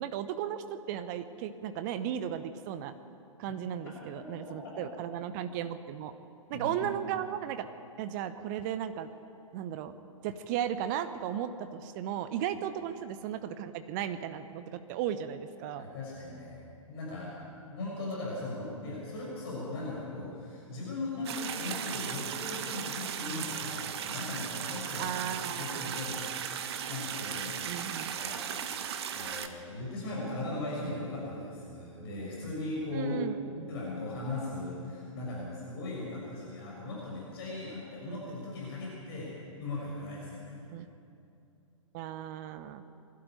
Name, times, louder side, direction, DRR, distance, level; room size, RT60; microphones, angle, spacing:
voice 1, 0.0-2.9 3.4-6.1 6.5-7.7 8.0-9.1 9.5-9.9 10.2-15.9 25.0-26.0 27.7-28.1 32.9-33.7 38.1-38.2 40.7-40.9 41.9-42.8, right 10 dB, 35° right, 11 dB, 0.9 m, -35 dB
voice 2, 6.5-6.8 15.8-17.4 17.6-26.2 26.9-27.6 28.0-28.5 29.1-33.2 33.7-39.3 39.6-40.6, left 2 dB, 45° left, -5 dB, 6.4 m, -38 dB
sound 1, 21.2-29.5, right 8 dB, 50° right, 1.4 m, -36 dB
23.0 x 12.5 x 9.1 m, 2.6 s
figure-of-eight pair, 115°, 17 cm